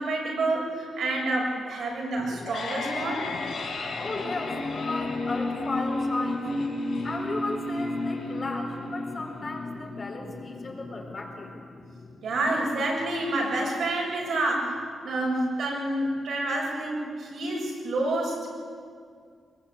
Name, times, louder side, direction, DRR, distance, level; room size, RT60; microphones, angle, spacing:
voice 1, 0.0-3.3 12.2-18.5, right 2 dB, 65° right, -2 dB, 7.0 m, -28 dB
sound 1, 2.2-13.2, left 2 dB, 65° left, 4.9 m, -33 dB
voice 2, 4.0-6.4 7.0-11.5, left 3 dB, 30° left, 0 dB, 4.4 m, -35 dB
23.5 x 22.5 x 8.9 m, 2.2 s
wide cardioid pair, 150°, 0 cm